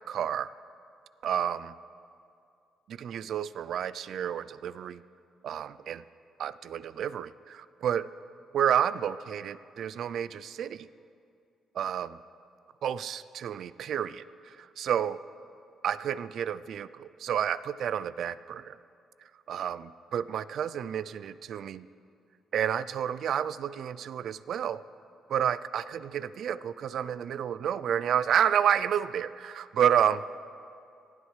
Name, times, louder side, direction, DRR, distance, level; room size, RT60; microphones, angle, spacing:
voice 1, 0.1-0.5 1.2-1.7 2.9-5.0 5.4-6.0 6.4-8.1 8.5-10.9 11.7-12.2 12.8-15.2 15.8-18.8 19.5-21.9 22.5-24.8 25.3-30.2, right 9 dB, 65° right, 17 dB, 0.3 m, -30 dB
18.5 x 12.5 x 3.2 m, 2.5 s
cardioid pair, 90°, 0 cm